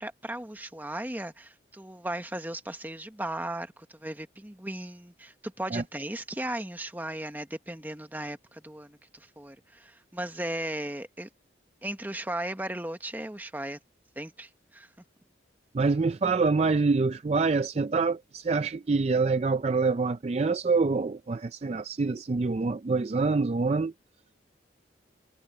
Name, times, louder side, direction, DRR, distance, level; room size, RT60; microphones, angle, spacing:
voice 1, 0.0-11.3 11.8-13.8 14.2-14.9, right 1 dB, 10° right, 1.0 m, -36 dB
voice 2, 15.7-23.9, right 4 dB, 35° right, 0.4 m, -26 dB
head